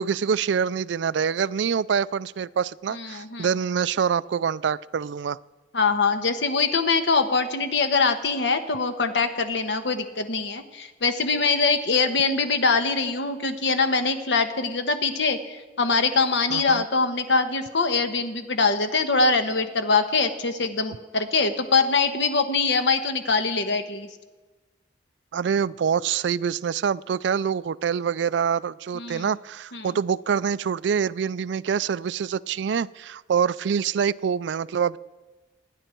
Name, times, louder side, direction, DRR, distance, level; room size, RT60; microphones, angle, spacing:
voice 1, 0.0-5.4 16.5-16.8 25.3-35.0, right 7 dB, 75° right, 19 dB, 0.4 m, -25 dB
voice 2, 2.9-3.5 5.7-24.1 28.9-29.3 29.7-29.9, left 4 dB, 70° left, 8 dB, 1.2 m, -23 dB
25.5 x 10.0 x 4.5 m, 1.2 s
head